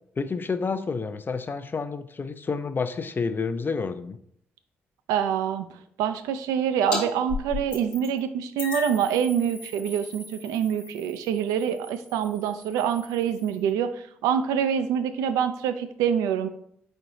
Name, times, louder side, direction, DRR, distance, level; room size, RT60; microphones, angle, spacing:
voice 1, 0.2-4.2, left 4 dB, 35° left, 11 dB, 0.4 m, -29 dB
voice 2, 5.1-5.7 6.0-16.5, right 8 dB, 75° right, 10 dB, 0.4 m, -26 dB
sound 1, 6.9-7.0 7.3-8.2 8.6-13.7, left 4 dB, 90° left, 0.9 m, -37 dB
4.6 x 4.4 x 2.6 m, 0.68 s
hypercardioid pair, 40°, 6 cm